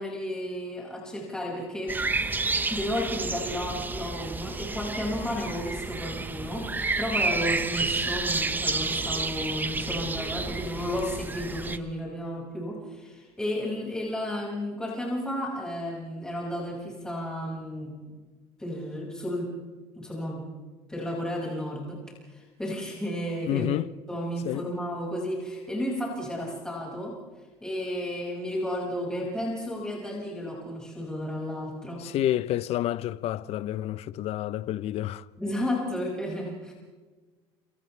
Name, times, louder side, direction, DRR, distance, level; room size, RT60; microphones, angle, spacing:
voice 1, 0.0-2.0 2.7-17.9 18.6-19.5 20.0-20.5 20.9-22.0 22.3-23.7 24.1-27.2 27.6-32.0 35.4-36.7, left 1 dB, 5° left, 6.2 m, -33 dB
sound 1, 1.9-11.8, right 3 dB, 15° right, 1.2 m, -30 dB
voice 2, 23.5-23.9 24.4-24.7 32.0-35.2, left 13 dB, 60° left, 0.8 m, -29 dB
28.5 x 27.5 x 3.4 m
cardioid pair, 115°, 12 cm